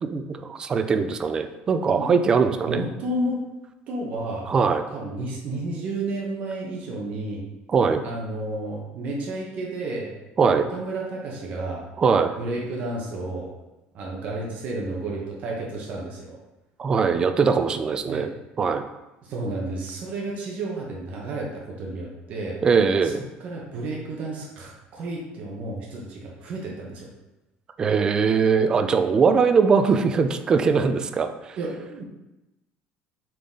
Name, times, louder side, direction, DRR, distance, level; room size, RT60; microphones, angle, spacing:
voice 1, 0.0-2.8 4.5-4.8 7.7-8.0 10.4-10.7 12.0-12.3 16.8-18.3 18.6-18.8 22.6-23.2 27.8-31.6, right 5 dB, 20° right, 8 dB, 0.4 m, -21 dB
voice 2, 2.7-3.4 3.9-4.5 4.9-7.4 8.0-10.1 10.7-11.9 12.4-13.5 13.9-16.4 18.0-18.3 19.2-22.6 23.0-23.1 23.4-27.1 31.6-32.0, right 2 dB, 40° right, -2 dB, 1.1 m, -31 dB
6.7 x 4.0 x 3.8 m, 1.0 s
cardioid pair, 180°, 4 cm